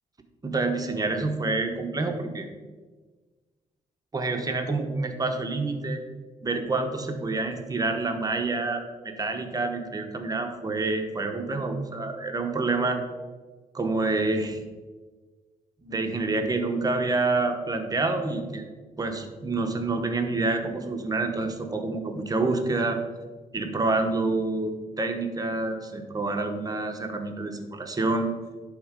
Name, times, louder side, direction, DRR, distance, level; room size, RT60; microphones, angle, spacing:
voice 1, 0.4-2.5 4.1-6.0 6.4-13.0 13.7-14.6 15.8-18.7 19.0-23.0 23.5-28.3, right 3 dB, 25° right, 5 dB, 1.0 m, -27 dB
11.0 x 3.6 x 5.1 m, 1.4 s
cardioid pair, 95°, 14 cm